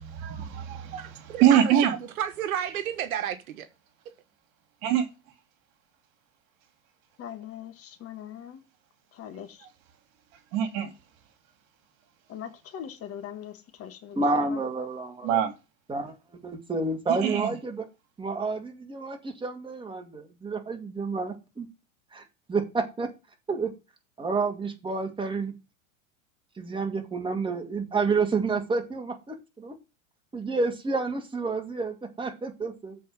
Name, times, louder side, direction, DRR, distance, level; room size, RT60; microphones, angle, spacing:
voice 1, 0.0-1.9 4.8-5.0 10.5-10.9 15.2-15.5 17.2-17.5, right 10 dB, 50° right, 2.4 m, -24 dB
voice 2, 1.0-3.7, right 10 dB, 75° right, 1.2 m, -32 dB
voice 3, 7.2-8.6 9.1-9.7 12.3-14.6, left 9 dB, 35° left, 1.5 m, -41 dB
voice 4, 14.2-15.4 15.9-16.1 16.4-17.9 18.2-21.7 22.1-22.2 22.5-23.1 23.5-23.7 24.2-25.5 26.6-29.7 30.3-33.0, right 4 dB, 10° right, 2.2 m, -29 dB
7.6 x 4.5 x 7.1 m
hypercardioid pair, 115°, 42 cm